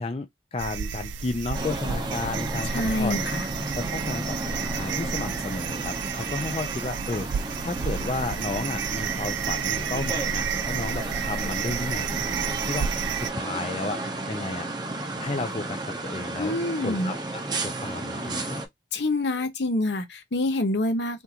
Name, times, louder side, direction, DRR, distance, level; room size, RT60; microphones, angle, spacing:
voice 1, 0.0-3.2 3.7-12.9 13.2-14.7 15.2-16.5 16.8-18.6, left 3 dB, 30° left, 0.4 m, -33 dB
sound 1, 0.6-13.3, right 7 dB, 85° right, 0.4 m, -31 dB
sound 2, 1.5-18.7, right 2 dB, 25° right, 0.6 m, -33 dB
voice 2, 2.7-3.5 16.4-17.1 18.4-18.5 18.9-21.2, left 2 dB, 75° left, 0.8 m, -27 dB
3.5 x 2.5 x 2.8 m
head